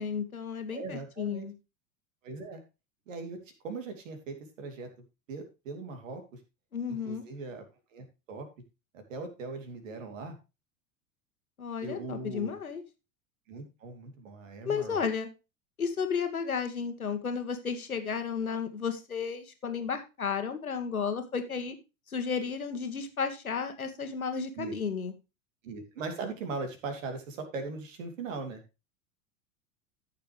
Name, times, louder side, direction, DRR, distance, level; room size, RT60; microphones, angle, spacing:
voice 1, 0.0-1.5 6.7-7.2 11.6-12.8 14.6-15.3 15.8-21.7 22.1-25.1, left 6 dB, 85° left, 7 dB, 1.6 m, -33 dB
voice 2, 0.7-1.5 2.2-2.6 3.1-3.4 3.6-4.9 5.3-6.2 7.0-7.6 7.9-8.5 8.9-10.4 11.8-12.5 13.5-15.0 24.6-24.7 25.6-28.6, right 3 dB, 65° right, 6 dB, 2.8 m, -39 dB
14.0 x 6.7 x 3.2 m, 0.28 s
figure-of-eight pair, 80°, 42 cm